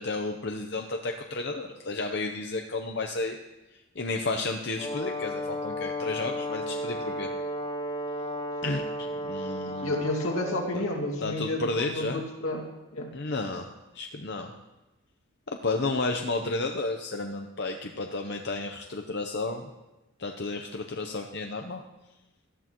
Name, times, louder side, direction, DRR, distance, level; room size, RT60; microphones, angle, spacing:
voice 1, 0.0-3.4 3.7-7.3 8.6-10.0 10.7-10.8 11.2-12.2 13.1-13.7 13.9-14.5 15.5-19.7 20.2-21.8, left 3 dB, 50° left, 3 dB, 0.8 m, -32 dB
Brass instrument, 4.8-10.8, equal, 25° left, 1.3 m, -34 dB
voice 2, 9.6-13.1, left 1 dB, 80° left, 1 dB, 2.2 m, -31 dB
18.0 x 13.5 x 3.1 m, 1.0 s
head